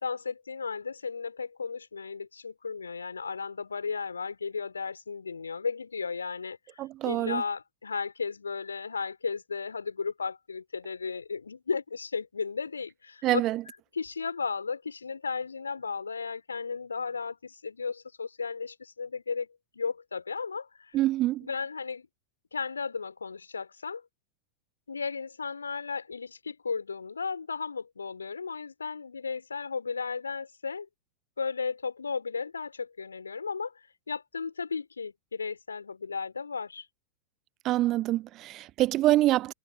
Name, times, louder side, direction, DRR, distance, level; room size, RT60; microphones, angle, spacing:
voice 1, 0.0-6.6 7.0-13.4 13.9-19.5 19.7-21.0 21.4-22.1 22.5-24.0 24.9-30.9 31.4-33.7 34.1-36.9, left 5 dB, 75° left, 3.8 m, -34 dB
voice 2, 6.8-7.4 13.2-13.6 20.9-21.5 37.6-39.5, right 16 dB, 35° right, 0.5 m, -25 dB
figure-of-eight pair, 90°, 0 cm